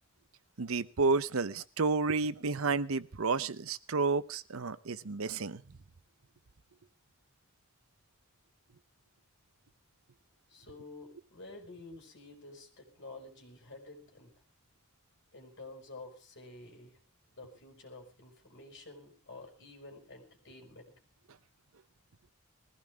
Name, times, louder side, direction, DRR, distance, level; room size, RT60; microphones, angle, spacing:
voice 1, 0.6-5.6, right 4 dB, 70° right, 15 dB, 0.8 m, -31 dB
voice 2, 10.5-14.3 15.3-17.0 17.4-20.9, left 2 dB, 55° left, 2 dB, 5.5 m, -50 dB
21.0 x 16.0 x 3.6 m, 0.36 s
head